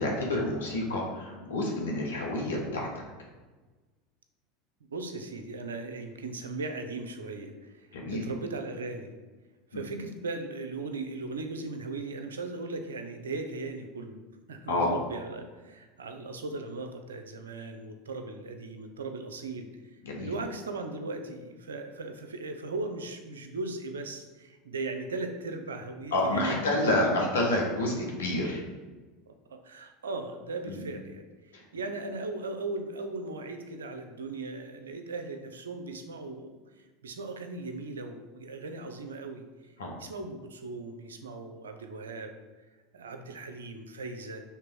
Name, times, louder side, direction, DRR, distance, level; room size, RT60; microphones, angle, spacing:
voice 1, 0.0-2.9 7.9-8.2 9.7-9.8 14.7-14.9 20.0-20.3 26.1-28.6 30.7-30.8 31.5-31.6 39.8-39.9, left 1 dB, 80° left, -1 dB, 1.4 m, -29 dB
voice 2, 4.9-9.1 9.7-14.2 14.5-19.7 20.2-27.1 29.3-36.6 37.0-39.4 40.0-42.3 42.9-44.4, right 3 dB, 85° right, 6 dB, 0.6 m, -38 dB
5.9 x 3.4 x 4.7 m, 1.3 s
hypercardioid pair, 85°, 0 cm